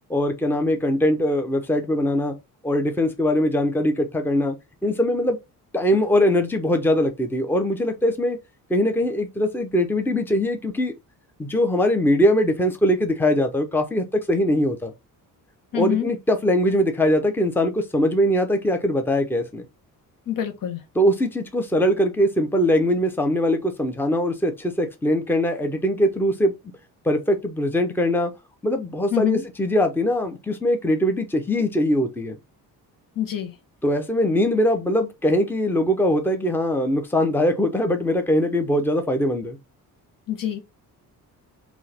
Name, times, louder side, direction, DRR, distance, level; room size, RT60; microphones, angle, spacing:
voice 1, 0.1-2.4 2.6-4.6 4.8-5.4 5.7-8.4 8.7-10.9 11.4-14.9 15.7-19.6 20.9-26.5 27.0-28.3 28.6-32.4 33.8-39.6, left 1 dB, 5° left, 0.8 m, -21 dB
voice 2, 15.7-16.1 20.3-20.8 29.1-29.4 33.2-33.5 40.3-40.6, left 11 dB, 60° left, 1.3 m, -25 dB
3.7 x 2.9 x 4.3 m
cardioid pair, 100°, 37 cm